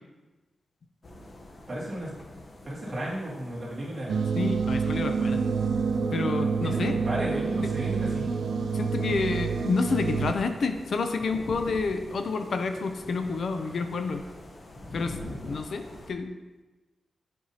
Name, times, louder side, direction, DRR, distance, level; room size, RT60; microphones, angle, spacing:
sound 1, 1.0-16.1, left 1 dB, 40° left, 0.8 m, -45 dB
voice 1, 1.7-2.1 2.6-4.3 6.6-8.4, right 1 dB, 35° right, -6 dB, 2.0 m, -34 dB
sound 2, 4.1-10.3, right 5 dB, 80° right, 0.3 m, -27 dB
voice 2, 4.4-5.4 6.1-7.0 8.7-14.2 14.9-15.2 15.4-16.3, left 4 dB, 60° left, 7 dB, 0.4 m, -29 dB
7.7 x 5.3 x 2.8 m, 1.2 s
wide cardioid pair, 130°, 0 cm